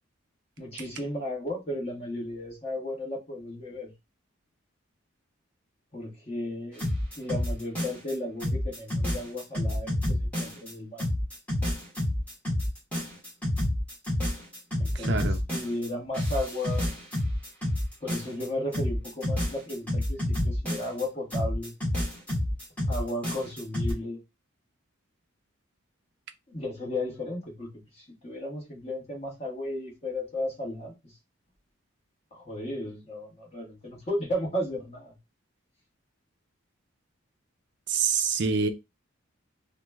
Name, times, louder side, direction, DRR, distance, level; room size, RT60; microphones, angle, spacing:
voice 1, 0.6-3.9 5.9-6.9 7.2-11.1 14.8-16.9 18.0-21.7 22.9-24.2 26.5-27.7 27.9-31.1 32.3-35.1, left 1 dB, 30° left, 1.2 m, -34 dB
sound 1, 6.8-8.1 8.4-10.7 11.0-15.9 16.1-18.5 18.7-21.0 21.3-23.9, left 1 dB, 5° left, 1.0 m, -29 dB
voice 2, 14.9-15.4 37.9-38.7, right 5 dB, 55° right, 0.4 m, -26 dB
3.0 x 2.1 x 3.4 m
head